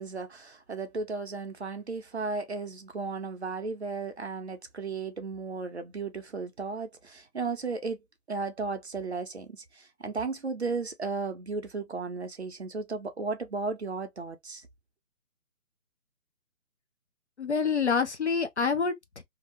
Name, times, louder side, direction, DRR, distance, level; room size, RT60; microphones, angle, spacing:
voice 1, 0.0-8.0 8.3-14.7, right 4 dB, 50° right, 0.6 m, -35 dB
voice 2, 17.4-19.2, left 5 dB, 50° left, 0.5 m, -27 dB
2.6 x 2.1 x 2.9 m
hypercardioid pair, 170°, 44 cm